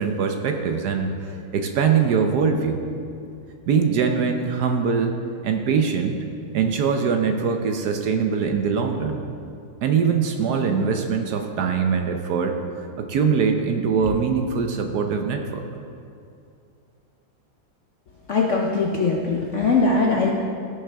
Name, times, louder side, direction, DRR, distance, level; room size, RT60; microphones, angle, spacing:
voice 1, 0.0-2.9 3.7-5.2 5.4-6.2 6.5-9.2 9.8-12.6 13.0-15.6, right 6 dB, 65° right, 5 dB, 1.1 m, -22 dB
voice 2, 18.3-20.3, left 3 dB, 60° left, -1 dB, 0.8 m, -21 dB
16.5 x 6.7 x 3.4 m, 2.5 s
omnidirectional pair, 2.1 m